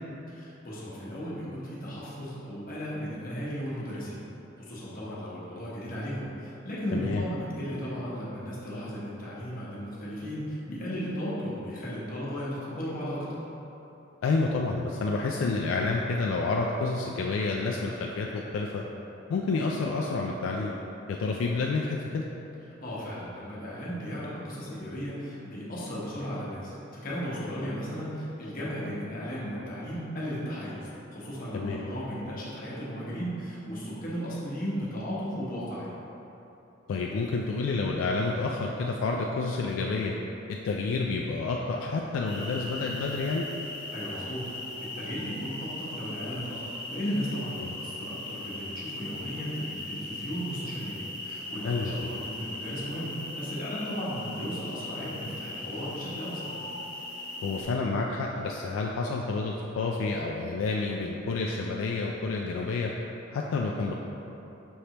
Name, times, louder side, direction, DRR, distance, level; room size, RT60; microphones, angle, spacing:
voice 1, 0.3-4.2 4.6-13.3 22.8-35.9 43.9-56.5, equal, 45° left, -7 dB, 1.0 m, -35 dB
voice 2, 6.9-7.3 14.2-18.8 19.3-20.7 21.1-22.3 31.5-31.8 36.9-40.1 40.6-43.5 47.6-47.8 51.6-52.1 57.4-62.9 63.3-63.9, left 3 dB, 80° left, -1 dB, 0.3 m, -29 dB
sound 1, 42.3-57.6, left 2 dB, 25° left, 0.9 m, -39 dB
5.4 x 3.3 x 2.9 m, 3.0 s
head